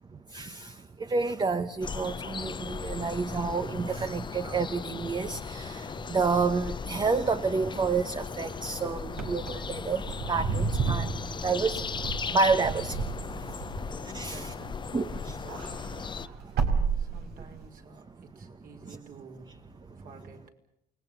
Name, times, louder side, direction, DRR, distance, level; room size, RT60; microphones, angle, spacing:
voice 1, 0.3-10.0 10.3-11.8 12.3-13.0 13.3-13.4 14.0-14.5 14.9-15.4 18.9-19.0, right 4 dB, 25° right, 10 dB, 1.1 m, -29 dB
sound 1, 1.8-16.3, left 6 dB, 30° left, 0.8 m, -37 dB
Wind / Car, 9.1-14.9 15.2-17.7, right 5 dB, 75° right, 4.2 m, -32 dB
voice 2, 13.5-16.1 16.4-20.5, right 5 dB, 55° right, 3 dB, 5.5 m, -51 dB
29.0 x 19.5 x 7.2 m, 0.82 s
cardioid pair, 110°, 17 cm